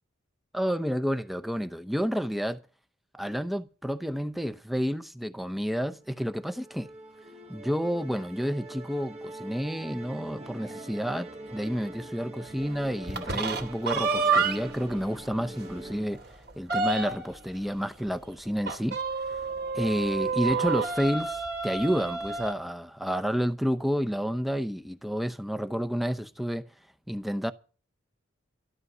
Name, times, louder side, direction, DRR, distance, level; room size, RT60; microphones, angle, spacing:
voice 1, 0.5-2.6 3.1-6.9 7.5-16.2 16.6-19.0 19.3-19.4 19.7-26.7 27.1-27.5, equal, ahead, 0.7 m, -30 dB
Musical instrument, 6.0-16.1, right 1 dB, 30° right, 1.1 m, -43 dB
sound 1, 13.0-14.8 15.3-15.4 15.7-15.8 16.2-17.4 18.6-22.5, right 4 dB, 55° right, 2.6 m, -29 dB
12.5 x 12.5 x 5.5 m
head